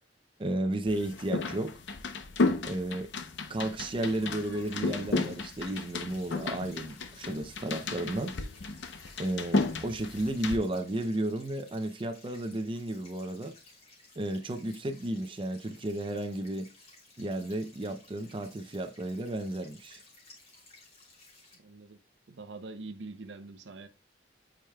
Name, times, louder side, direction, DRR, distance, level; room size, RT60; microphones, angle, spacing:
voice 1, 0.4-1.8 2.6-3.1 3.5-8.4 9.2-13.6 14.2-16.7 17.2-20.0, right 1 dB, 30° right, 0.6 m, -33 dB
sound 1, 0.9-10.6, left 3 dB, 85° left, 0.8 m, -33 dB
sound 2, 3.7-21.5, left 2 dB, 35° left, 3.0 m, -57 dB
voice 2, 21.5-22.0 22.3-23.9, right 3 dB, 80° right, 0.6 m, -44 dB
8.9 x 4.9 x 2.2 m
head